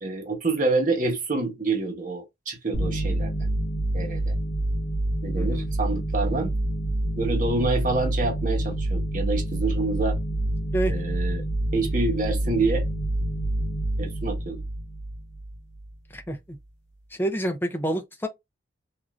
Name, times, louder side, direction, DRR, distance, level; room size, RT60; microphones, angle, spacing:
voice 1, 0.0-3.5 3.9-4.3 5.2-6.5 7.2-10.2 10.9-11.4 11.7-12.9 14.0-14.6, right 3 dB, 45° right, 0.9 m, -27 dB
sound 1, 2.7-15.9, right 1 dB, 70° left, 0.8 m, -27 dB
voice 2, 5.3-5.7 10.7-11.0 16.1-16.4 17.1-18.3, right 1 dB, 10° left, 0.4 m, -28 dB
3.1 x 2.4 x 2.3 m
head